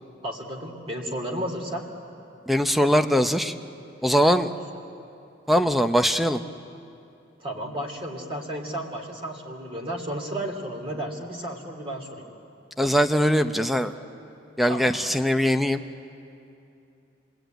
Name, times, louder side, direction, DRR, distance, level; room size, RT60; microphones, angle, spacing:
voice 1, 0.2-1.8 7.4-12.2 14.7-14.9, right 1 dB, 30° right, 0 dB, 2.9 m, -33 dB
voice 2, 2.5-3.5 4.0-4.5 5.5-6.4 12.8-13.9 14.6-15.8, equal, ahead, 8 dB, 0.7 m, -21 dB
29.0 x 20.5 x 9.2 m, 2.7 s
head